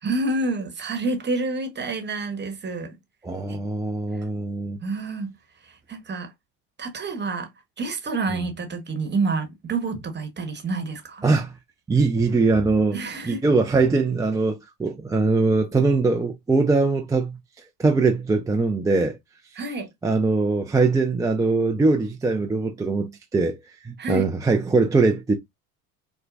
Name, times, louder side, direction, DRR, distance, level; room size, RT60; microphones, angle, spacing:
voice 1, 0.0-2.9 3.5-3.6 4.1-4.2 4.8-5.3 5.6-6.3 6.8-7.5 7.8-11.2 12.9-13.4 19.5-19.9 24.0-24.3, right 3 dB, 25° right, 1.1 m, -28 dB
voice 2, 3.2-4.8 8.3-8.4 11.2-11.5 11.9-13.0 13.2-17.4 17.8-19.2 20.0-23.6 23.8-25.3, right 3 dB, 10° right, 0.3 m, -21 dB
4.3 x 2.2 x 2.5 m
hypercardioid pair, 80°, 40 cm